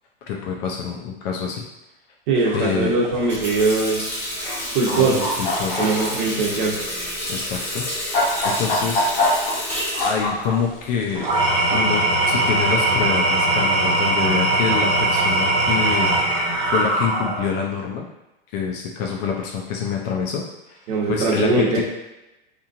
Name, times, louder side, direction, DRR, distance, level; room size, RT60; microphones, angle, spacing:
voice 1, 0.3-1.6 2.5-2.9 4.9-6.1 7.3-7.8 8.1-9.1 10.0-11.3 11.7-16.1 16.6-18.1 18.5-20.8 21.1-21.8, left 6 dB, 45° left, 0 dB, 0.5 m, -26 dB
voice 2, 2.3-4.1 4.7-5.3 5.8-6.8 20.9-21.8, right 3 dB, 55° right, -3 dB, 1.0 m, -21 dB
sound 1, 2.4-2.7 3.1-3.5 4.3-4.6 4.9-6.2 7.1-7.2 7.8-10.7 11.0-11.6 12.6-12.8, left 2 dB, 75° left, 1.0 m, -25 dB
Water tap faucet, 3.1-11.6, equal, 5° left, 0.9 m, -30 dB
Engine / Tools, 11.1-17.6, right 2 dB, 20° right, 0.5 m, -20 dB
3.0 x 2.6 x 2.5 m, 0.97 s
hypercardioid pair, 125°, 30 cm